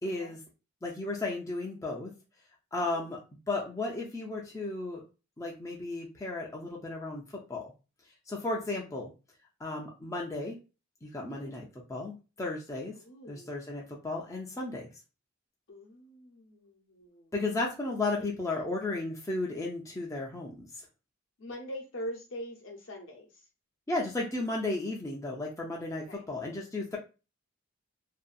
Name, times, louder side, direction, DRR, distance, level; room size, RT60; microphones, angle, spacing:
voice 1, 0.0-0.4 0.8-2.1 2.7-3.2 3.5-5.0 5.4-7.7 8.3-9.1 9.6-10.6 11.0-13.0 13.3-14.9 17.3-20.8 23.9-27.0, left 2 dB, 15° left, -2 dB, 0.4 m, -34 dB
voice 2, 11.3-11.6 13.0-13.6 15.7-17.3 17.9-18.9 21.4-23.5 26.1-26.2, equal, 60° left, 1 dB, 0.7 m, -44 dB
2.6 x 2.2 x 2.3 m, 0.31 s
head